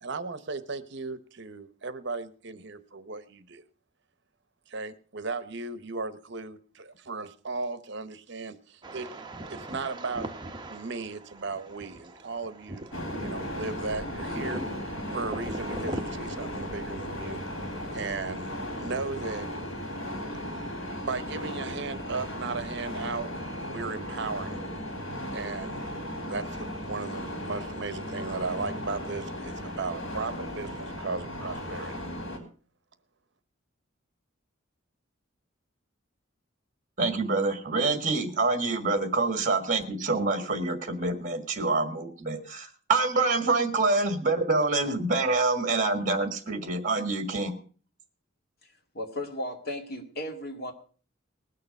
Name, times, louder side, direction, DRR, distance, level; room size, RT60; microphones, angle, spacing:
voice 1, 0.0-3.6 4.7-9.2 9.5-10.3 10.7-12.9 13.2-17.4 17.9-19.5 21.0-24.6 25.3-25.8 26.2-32.0, right 4 dB, 60° right, 13 dB, 0.9 m, -36 dB
sound 1, 8.8-16.0, right 1 dB, 20° right, 0.9 m, -40 dB
sound 2, 12.9-32.4, equal, 85° left, 3.5 m, -36 dB
voice 2, 37.0-47.6, right 3 dB, 40° right, 7 dB, 1.7 m, -26 dB
voice 3, 48.9-50.7, left 1 dB, 50° left, 3 dB, 2.2 m, -35 dB
20.0 x 6.8 x 5.3 m, 0.41 s
head